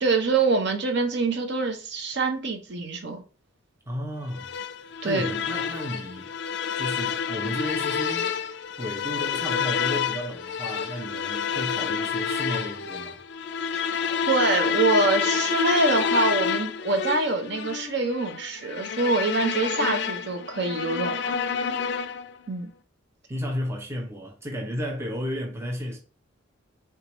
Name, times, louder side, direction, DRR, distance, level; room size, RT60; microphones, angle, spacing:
voice 1, 0.0-3.2 5.0-5.3 13.7-21.4 22.5-22.7, right 3 dB, 55° right, 0.7 m, -25 dB
voice 2, 3.9-6.3 6.8-8.4 8.8-13.2 23.3-26.0, equal, 10° right, 0.5 m, -33 dB
sound 1, 4.3-22.4, left 7 dB, 55° left, 0.3 m, -28 dB
4.6 x 3.5 x 2.9 m
head